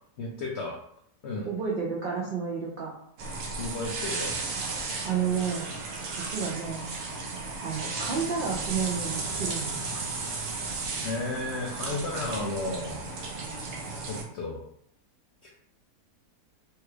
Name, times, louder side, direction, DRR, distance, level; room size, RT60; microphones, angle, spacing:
voice 1, 0.2-0.8 1.2-1.5 3.6-4.4 11.0-13.1 14.0-14.6 15.4-15.5, left 2 dB, 75° left, -1 dB, 0.6 m, -33 dB
voice 2, 1.4-2.9 5.0-5.7 6.2-6.8 7.6-9.8, right 6 dB, 80° right, -4 dB, 0.4 m, -31 dB
sound 1, 3.2-14.2, right 3 dB, 65° right, 0.9 m, -34 dB
3.3 x 2.3 x 3.2 m, 0.70 s
omnidirectional pair, 1.7 m